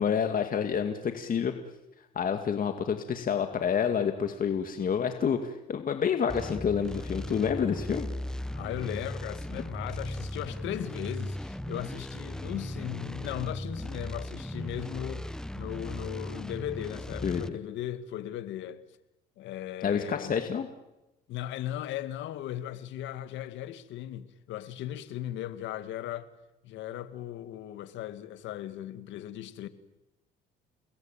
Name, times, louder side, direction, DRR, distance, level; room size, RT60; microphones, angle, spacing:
voice 1, 0.0-1.5 2.2-8.1 17.2-17.6 19.8-20.7, left 7 dB, 45° left, 2.3 m, -28 dB
sound 1, 6.3-17.5, left 1 dB, 5° left, 1.1 m, -37 dB
voice 2, 8.5-15.3 15.5-18.8 19.4-20.3 21.3-26.3 26.6-29.7, left 12 dB, 75° left, 2.1 m, -37 dB
29.5 x 20.0 x 9.2 m
supercardioid pair, 75°, 19 cm